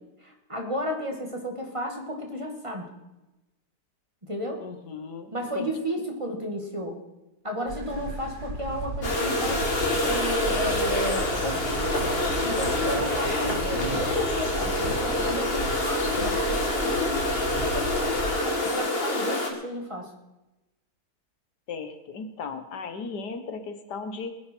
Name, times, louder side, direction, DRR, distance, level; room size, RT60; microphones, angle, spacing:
voice 1, 0.2-2.9 4.2-4.6 5.3-7.0 7.4-9.7 10.0-12.1 12.4-17.0 17.6-20.1, equal, 20° right, 2 dB, 2.0 m, -33 dB
voice 2, 4.6-5.7 21.7-24.3, left 5 dB, 85° left, 8 dB, 1.9 m, -36 dB
sound 1, 7.7-18.3, right 2 dB, 70° right, 2.2 m, -35 dB
sound 2, 9.0-19.5, left 2 dB, 35° left, 2.1 m, -26 dB
20.0 x 10.5 x 4.5 m, 1.0 s
omnidirectional pair, 1.7 m